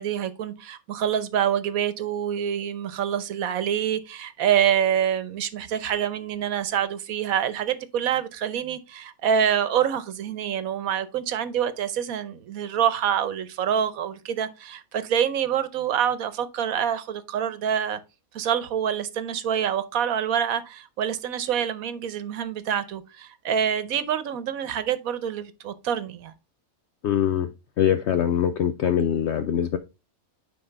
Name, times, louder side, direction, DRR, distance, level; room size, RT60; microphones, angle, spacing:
voice 1, 0.0-18.0 18.3-26.3, right 9 dB, 75° right, 1.2 m, -26 dB
voice 2, 27.0-27.5 27.8-29.8, left 9 dB, 65° left, 0.8 m, -23 dB
9.6 x 4.1 x 3.3 m
omnidirectional pair, 1.5 m